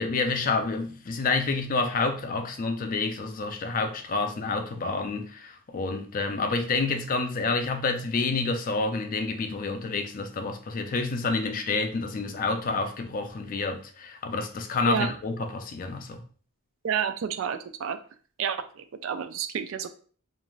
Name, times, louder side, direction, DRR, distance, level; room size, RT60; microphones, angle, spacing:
voice 1, 0.0-16.2, left 3 dB, 40° left, 0.4 m, -28 dB
voice 2, 16.8-18.0 18.4-19.9, right 7 dB, 65° right, 0.3 m, -30 dB
2.5 x 2.3 x 3.1 m
head